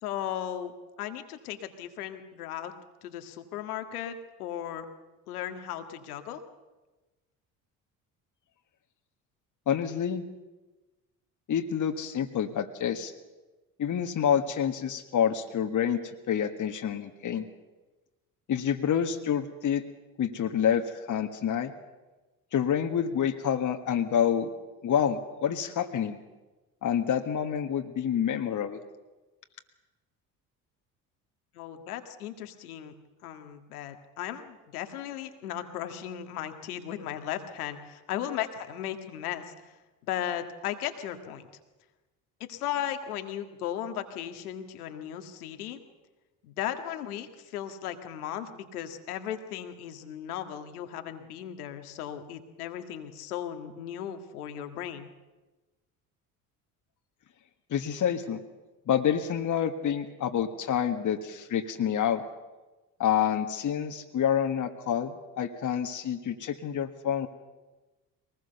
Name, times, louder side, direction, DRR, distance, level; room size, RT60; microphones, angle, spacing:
voice 1, 0.0-2.7 3.0-4.9 5.3-6.4 31.5-32.9 33.2-39.8 40.0-41.5 42.4-45.8 46.4-55.1, left 10 dB, 80° left, 7 dB, 1.9 m, -36 dB
voice 2, 9.7-10.2 11.5-13.1 13.8-17.5 18.5-19.8 20.2-21.7 22.5-24.5 24.8-26.2 26.8-28.8 57.7-58.4 58.9-62.2 63.0-67.3, left 8 dB, 40° left, 5 dB, 1.7 m, -28 dB
23.0 x 19.5 x 6.9 m, 1.2 s
hypercardioid pair, 60°, 44 cm